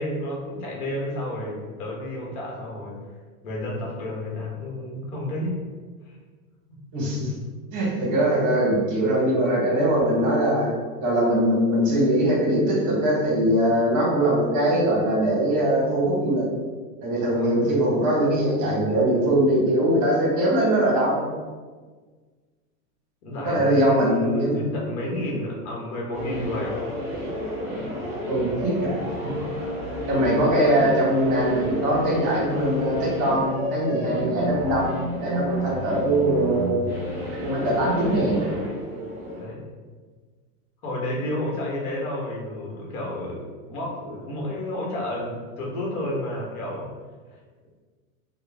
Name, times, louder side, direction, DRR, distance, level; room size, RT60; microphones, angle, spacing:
voice 1, 0.0-2.9 3.4-5.5 6.1-6.2 17.2-17.8 23.2-26.8 39.3-39.6 40.8-46.9, left 1 dB, 85° left, -3 dB, 1.1 m, -31 dB
voice 2, 6.9-7.3 7.7-10.7 11.0-16.5 17.0-21.2 23.4-24.6 28.3-28.9 29.2-29.3 30.1-36.8 37.4-38.5, right 1 dB, 45° right, -4 dB, 1.1 m, -22 dB
sound 1, 26.1-39.4, equal, 5° right, 0.8 m, -31 dB
2.4 x 2.2 x 3.3 m, 1.5 s
supercardioid pair, 130°, 43 cm